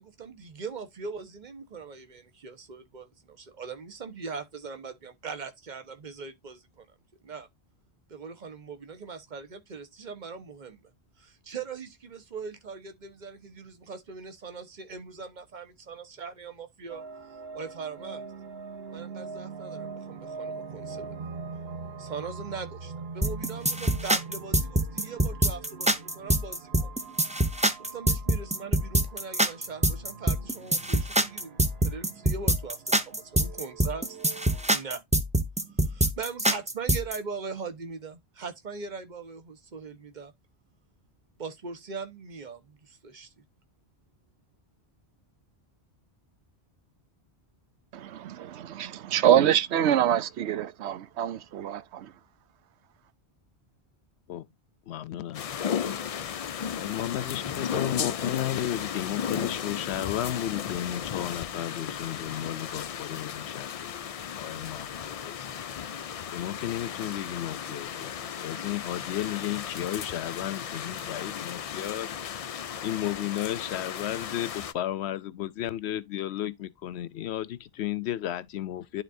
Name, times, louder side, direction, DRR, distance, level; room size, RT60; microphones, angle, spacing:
voice 1, 0.0-6.9 7.2-7.5 8.1-10.8 11.2-17.0 17.5-18.2 18.9-21.2 22.0-26.9 27.8-34.2 34.7-35.0 35.8-40.3 41.4-43.3, right 5 dB, 45° right, 1.2 m, -40 dB
sound 1, 16.9-34.8, right 4 dB, 65° right, 1.2 m, -43 dB
sound 2, 23.2-37.2, right 1 dB, 10° right, 0.6 m, -25 dB
voice 2, 47.9-52.1, right 10 dB, 90° right, 0.9 m, -25 dB
voice 3, 54.9-55.5 56.8-64.1 64.4-65.5 66.3-72.1 72.8-79.0, left 12 dB, 80° left, 0.9 m, -33 dB
sound 3, 55.3-74.7, left 8 dB, 60° left, 0.4 m, -35 dB
11.0 x 3.9 x 2.6 m
omnidirectional pair, 1.1 m